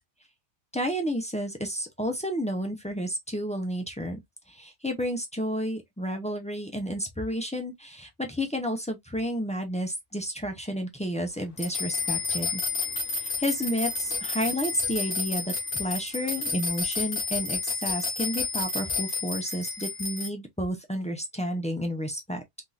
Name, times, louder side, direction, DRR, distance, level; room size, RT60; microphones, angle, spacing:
voice 1, 0.7-4.2 4.5-12.6 13.2-22.4, equal, 10° left, 0.4 m, -31 dB
sound 1, 11.6-20.3, left 3 dB, 45° left, 1.1 m, -31 dB
3.5 x 2.7 x 2.3 m
omnidirectional pair, 1.4 m